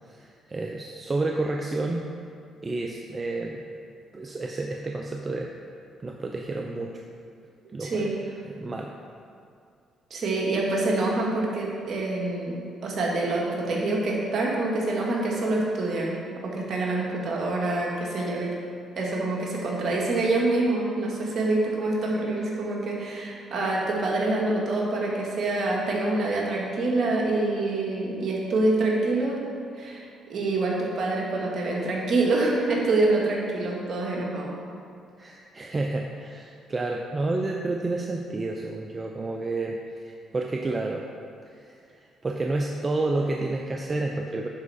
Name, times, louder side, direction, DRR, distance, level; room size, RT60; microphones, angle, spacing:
voice 1, 0.1-2.1 2.6-3.6 4.1-5.5 6.0-6.9 7.7-8.1 8.4-8.9 35.2-39.8 40.0-41.0 41.5-41.9 42.2-44.5, right 2 dB, 30° right, 1 dB, 0.6 m, -30 dB
voice 2, 7.8-8.1 10.1-16.2 16.4-18.5 19.0-29.4 29.7-30.0 30.3-34.5, right 2 dB, 55° right, -3 dB, 1.8 m, -26 dB
10.5 x 4.7 x 4.2 m, 2.4 s
supercardioid pair, 65°, 0 cm